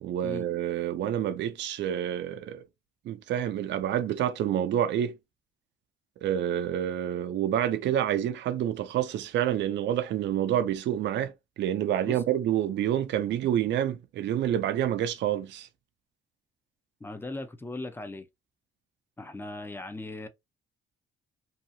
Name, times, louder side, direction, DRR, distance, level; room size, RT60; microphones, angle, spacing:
voice 1, 0.0-2.6 3.1-5.2 6.2-11.3 11.6-15.7, right 10 dB, 65° right, 0.4 m, -28 dB
voice 2, 17.0-18.2 19.2-20.3, left 2 dB, 10° left, 0.5 m, -38 dB
2.8 x 2.3 x 2.6 m
cardioid pair, 90°, 20 cm